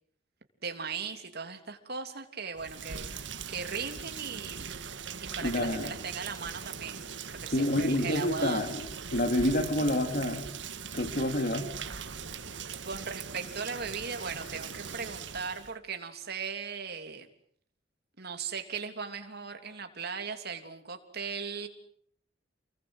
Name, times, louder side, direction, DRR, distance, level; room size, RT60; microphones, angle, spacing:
voice 1, 0.6-4.7 5.2-7.0 7.3-8.7 11.0-11.2 12.8-17.3 18.2-21.7, right 5 dB, 60° right, 6 dB, 3.3 m, -38 dB
Rain, 2.5-15.7, right 6 dB, 75° right, 1.9 m, -41 dB
voice 2, 5.4-5.9 7.5-10.5 10.9-11.7, left 1 dB, 50° left, 7 dB, 2.8 m, -28 dB
29.5 x 22.5 x 8.0 m, 0.65 s
head